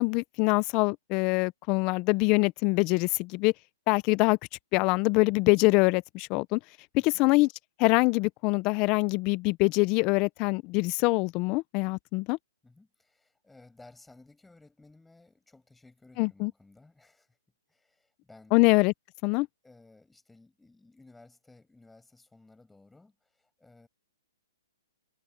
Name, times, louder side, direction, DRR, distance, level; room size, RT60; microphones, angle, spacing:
voice 1, 0.0-3.5 3.9-4.4 4.7-6.6 7.0-7.5 7.8-12.4 16.2-16.5 18.5-18.9 19.2-19.5, left 25 dB, 30° left, 0.6 m, -24 dB
voice 2, 12.6-17.4 17.7-18.6 19.6-23.9, left 2 dB, 5° left, 6.2 m, -57 dB
hypercardioid pair, 150°, 2 cm